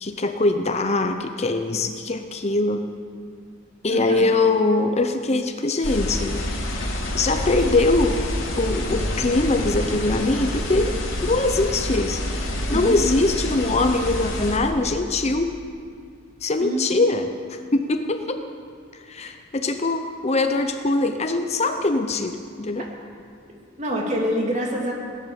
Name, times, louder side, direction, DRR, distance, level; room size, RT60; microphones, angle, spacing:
voice 1, 0.0-2.8 3.8-6.4 6.7-8.2 8.6-10.9 11.2-12.2 12.7-15.6 16.4-18.5 19.1-22.8, left 2 dB, 35° left, 7 dB, 0.7 m, -22 dB
voice 2, 3.9-4.4 12.7-13.0 16.6-17.0 19.2-19.3 23.8-24.9, equal, 35° right, -1 dB, 2.8 m, -26 dB
sound 1, 5.8-14.6, left 1 dB, 90° left, 3.1 m, -27 dB
18.0 x 11.0 x 7.0 m, 2.2 s
head